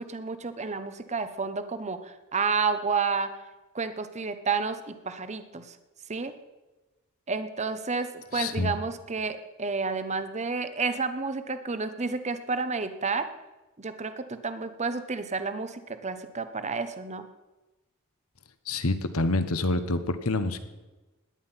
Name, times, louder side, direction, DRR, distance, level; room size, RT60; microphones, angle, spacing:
voice 1, 0.0-3.3 3.7-5.8 6.1-6.3 7.3-13.3 13.8-17.3, right 4 dB, 30° right, 10 dB, 1.0 m, -30 dB
voice 2, 8.3-8.7 18.7-20.6, left 2 dB, 75° left, 11 dB, 1.3 m, -27 dB
17.5 x 11.0 x 5.8 m, 1.1 s
head